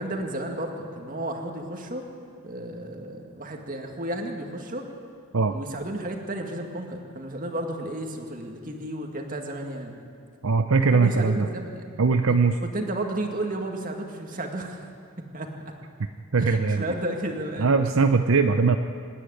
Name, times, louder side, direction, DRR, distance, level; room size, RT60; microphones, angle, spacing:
voice 1, 0.0-2.1 2.4-4.9 5.5-9.9 10.8-11.9 12.2-14.8 15.3-15.5 16.4-17.7, right 1 dB, 40° right, 2 dB, 2.1 m, -33 dB
voice 2, 10.4-11.5 12.0-12.6 16.3-16.9 17.6-18.8, right 4 dB, 75° right, 7 dB, 0.7 m, -20 dB
26.0 x 10.0 x 9.9 m, 2.3 s
head